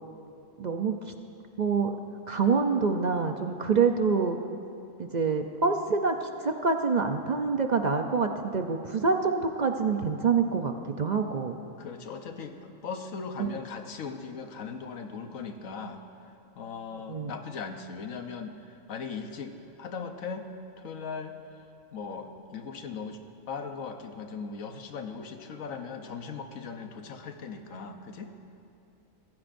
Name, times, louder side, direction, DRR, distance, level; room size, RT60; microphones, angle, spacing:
voice 1, 0.6-1.1 1.6-2.0 2.3-4.4 5.0-11.6 13.4-13.6 17.1-17.3, right 5 dB, 50° right, 5 dB, 0.5 m, -26 dB
voice 2, 11.8-16.0 16.5-20.5 20.8-21.4 21.9-23.2 23.5-28.3, left 5 dB, 80° left, 6 dB, 1.3 m, -39 dB
25.5 x 15.0 x 2.6 m, 2.6 s
omnidirectional pair, 1.4 m